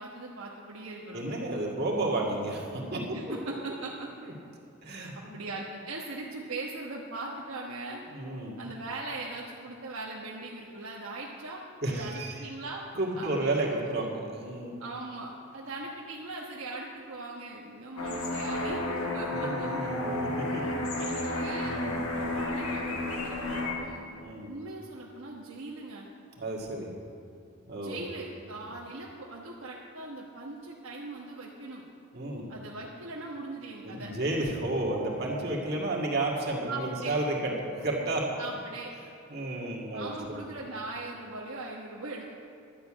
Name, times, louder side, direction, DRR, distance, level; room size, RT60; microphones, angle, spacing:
voice 1, 0.0-1.2 3.1-4.1 5.3-8.0 8.6-11.6 11.9-12.8 13.1-13.9 14.8-18.8 19.1-19.9 21.0-21.7 22.2-24.1 24.4-26.1 27.8-31.8 32.5-34.1 36.7-37.2 38.4-38.9 39.9-42.3, right 2 dB, 75° right, -4 dB, 1.2 m, -40 dB
voice 2, 1.1-3.2 4.2-4.3 4.8-5.3 8.1-8.5 11.8-12.5 12.9-14.8 19.3-21.0 21.6-22.0 24.2-24.5 26.4-26.9 27.7-28.0 32.1-32.4 33.8-38.2 39.3-40.4, right 2 dB, 45° right, -2 dB, 1.9 m, -32 dB
sound 1, 18.0-23.7, left 1 dB, 85° left, 1.6 m, -32 dB
12.0 x 6.9 x 8.7 m, 2.6 s
head